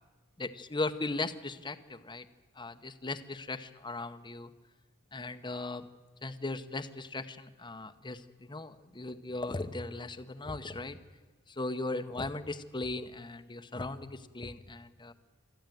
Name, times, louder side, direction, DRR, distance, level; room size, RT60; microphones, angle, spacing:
voice 1, 0.4-2.2 2.6-4.5 5.1-5.9 6.2-11.0 11.5-15.1, left 2 dB, 20° left, 7 dB, 0.9 m, -38 dB
23.5 x 13.0 x 9.2 m, 1.3 s
head